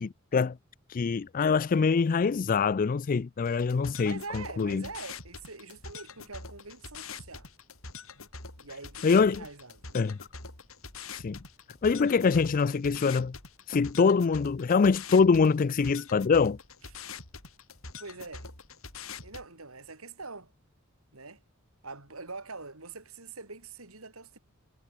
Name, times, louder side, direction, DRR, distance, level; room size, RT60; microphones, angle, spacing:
voice 1, 0.0-0.6 0.9-4.8 9.0-9.4 9.9-10.2 11.1-11.4 11.8-13.4 13.7-16.6, left 5 dB, 40° left, 0.4 m, -24 dB
sound 1, 3.4-19.4, left 5 dB, 75° left, 6.9 m, -45 dB
voice 2, 4.0-7.5 8.6-10.1 18.0-18.5 19.2-20.5 21.1-21.4 21.8-24.4, right 3 dB, 90° right, 6.0 m, -44 dB
head